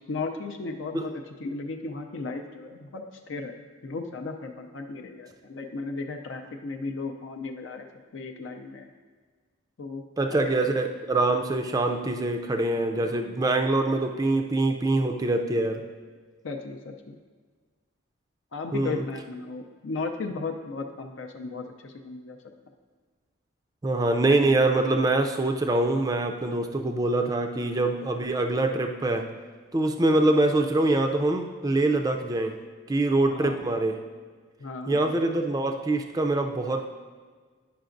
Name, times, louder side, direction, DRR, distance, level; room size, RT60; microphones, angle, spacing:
voice 1, 0.1-1.1 1.4-3.5 3.8-7.9 8.1-8.9 9.8-10.0 10.3-10.9 16.4-17.2 18.5-22.4 33.3-33.7 34.6-35.1, left 3 dB, 70° left, 4 dB, 0.5 m, -35 dB
voice 2, 10.2-15.8 18.7-19.0 23.8-29.3 29.7-32.6 32.9-34.0 34.9-36.9, right 2 dB, 20° right, 4 dB, 0.3 m, -24 dB
10.0 x 5.7 x 2.5 m, 1.5 s
head